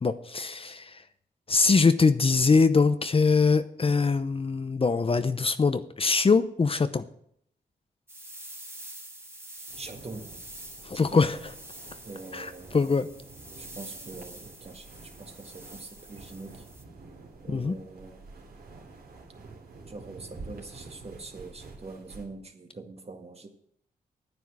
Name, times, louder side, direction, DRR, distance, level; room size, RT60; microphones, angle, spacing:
voice 1, 0.0-1.0 1.5-7.0 10.8-11.4 12.3-13.1 17.5-17.7, left 4 dB, 35° left, 11 dB, 0.7 m, -23 dB
sound 1, 8.1-16.8, right 1 dB, 15° right, 2.0 m, -46 dB
sound 2, 9.7-22.3, right 3 dB, 70° right, 2.9 m, -48 dB
voice 2, 9.8-10.3 10.9-11.2 12.1-12.8 13.6-14.9 15.2-16.6 17.4-18.2 19.8-23.5, right 3 dB, 40° right, 4 dB, 1.9 m, -43 dB
9.7 x 9.2 x 6.2 m, 0.69 s
cardioid pair, 65°, 16 cm